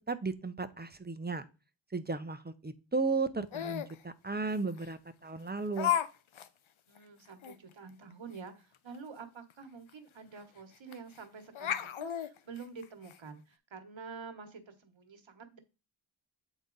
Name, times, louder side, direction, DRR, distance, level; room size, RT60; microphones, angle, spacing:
voice 1, 0.1-1.4 1.9-5.9, right 4 dB, 20° right, 11 dB, 0.6 m, -35 dB
Laughter, 3.5-3.9 4.8-4.9 5.8-6.1 6.3-6.5 7.0-7.1 7.4-7.5 9.5-9.6 9.9-10.0 10.9-11.2 11.5-13.2, left 10 dB, 90° left, 0.6 m, -33 dB
voice 2, 6.9-15.6, right 5 dB, 75° right, 7 dB, 1.1 m, -48 dB
8.3 x 4.0 x 3.8 m, 0.30 s
wide cardioid pair, 75°, 46 cm